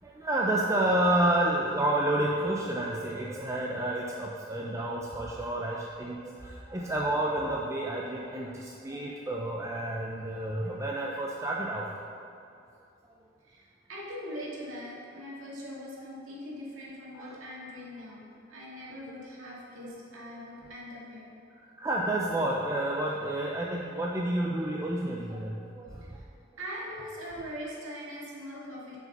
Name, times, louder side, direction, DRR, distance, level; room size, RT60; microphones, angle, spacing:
voice 1, 0.0-11.9 17.2-17.4 21.6-26.2, right 1 dB, 15° right, -3 dB, 0.5 m, -30 dB
voice 2, 13.4-21.3 26.0-26.2 26.6-29.0, equal, 85° right, -6 dB, 2.1 m, -41 dB
7.8 x 5.0 x 5.4 m, 2.5 s
head